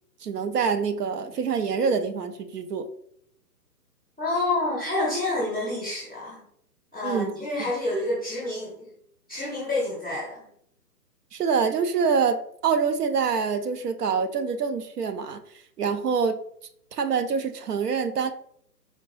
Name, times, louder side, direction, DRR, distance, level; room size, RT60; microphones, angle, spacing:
voice 1, 0.2-2.9 7.0-7.3 11.3-12.4 12.6-15.4 15.8-16.4 16.9-18.3, right 6 dB, 70° right, 9 dB, 0.7 m, -25 dB
voice 2, 4.2-6.4 6.9-8.7 9.3-10.4, left 2 dB, 5° right, -9 dB, 0.5 m, -28 dB
4.4 x 2.8 x 3.1 m, 0.69 s
hypercardioid pair, 155°, 49 cm